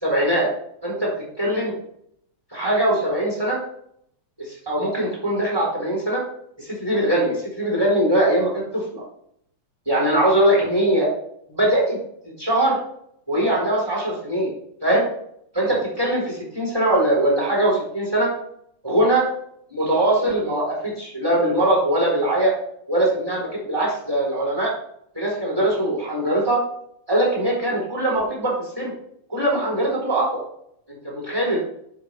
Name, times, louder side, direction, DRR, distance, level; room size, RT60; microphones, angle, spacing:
voice 1, 0.0-0.5 0.8-1.1 1.4-1.7 2.5-3.6 4.5-6.2 6.6-9.0 9.9-11.1 11.5-12.0 12.4-12.8 13.3-14.5 14.8-15.0 15.5-18.3 18.8-19.2 19.7-22.5 22.9-24.7 25.1-26.6 27.1-28.9 29.3-30.4 30.9-31.6, right 1 dB, 5° right, -3 dB, 4.0 m, -21 dB
11.0 x 5.0 x 5.0 m, 0.70 s
omnidirectional pair, 3.7 m